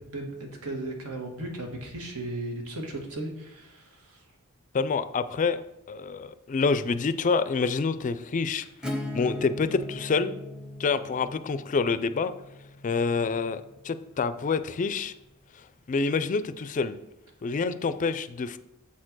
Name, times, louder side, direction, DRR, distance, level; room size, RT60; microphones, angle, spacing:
voice 1, 0.0-4.2, right 2 dB, 80° right, 1 dB, 1.8 m, -36 dB
voice 2, 4.7-8.7 9.1-10.4 10.8-12.3 12.8-15.1 15.9-17.0 17.4-18.6, left 4 dB, 35° left, 13 dB, 0.4 m, -27 dB
Acoustic guitar / Strum, 8.8-14.3, left 1 dB, 5° right, 0.7 m, -39 dB
7.3 x 4.4 x 6.1 m, 0.88 s
head